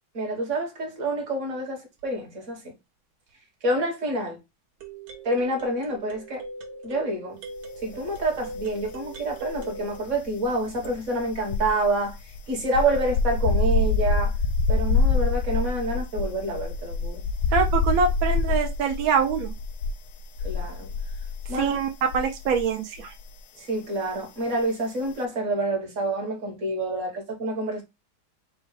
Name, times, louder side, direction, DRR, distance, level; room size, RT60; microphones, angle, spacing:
voice 1, 0.1-2.6 3.6-4.4 5.2-6.4 6.8-7.4 7.8-12.2 12.5-14.3 14.7-17.2 20.4-20.9 21.5-21.8 23.6-27.8, right 1 dB, 40° right, 1.5 m, -27 dB
sound 1, 2.0-2.1 4.8-10.0, right 2 dB, 65° right, 1.5 m, -40 dB
sound 2, 8.1-8.9 9.1-22.7 22.9-23.2, left 3 dB, 75° left, 1.0 m, -26 dB
voice 2, 17.5-19.5 21.5-23.1, right 6 dB, 80° right, 0.8 m, -24 dB
4.5 x 2.2 x 4.7 m
omnidirectional pair, 2.2 m